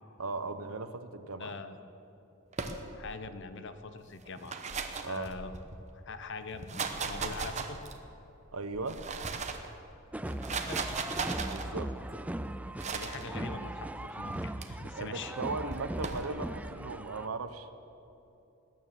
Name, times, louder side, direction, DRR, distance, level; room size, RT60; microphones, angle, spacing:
voice 1, 0.2-1.5 5.0-5.3 8.5-9.0 11.5-11.9 14.9-17.7, right 3 dB, 80° right, 10 dB, 0.9 m, -37 dB
voice 2, 1.4-1.8 2.9-4.6 5.1-5.5 5.9-7.8 10.5-10.8 12.9-15.3, left 4 dB, 55° left, 10 dB, 0.9 m, -42 dB
sound 1, 2.5-3.2 4.2-5.8 6.5-8.1 8.7-9.7 10.3-11.7 12.8-13.2 14.3-14.7 15.7-16.3, right 4 dB, 30° right, 0.9 m, -37 dB
sound 2, 10.1-17.3, right 1 dB, 5° right, 0.3 m, -39 dB
19.5 x 9.5 x 7.4 m, 2.9 s
head